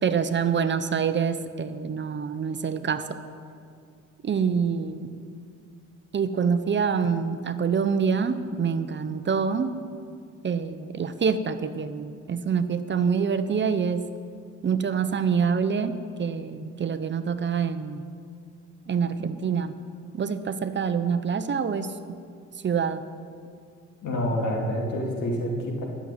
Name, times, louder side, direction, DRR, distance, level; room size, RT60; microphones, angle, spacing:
voice 1, 0.0-3.2 4.2-5.1 6.1-9.8 10.4-14.0 14.6-18.0 18.9-19.8 20.1-21.9 22.6-23.0, right 6 dB, 40° right, 11 dB, 0.7 m, -26 dB
voice 2, 24.0-25.8, equal, 80° left, -1 dB, 2.8 m, -27 dB
12.0 x 7.2 x 8.9 m, 2.2 s
cardioid pair, 90°, 30 cm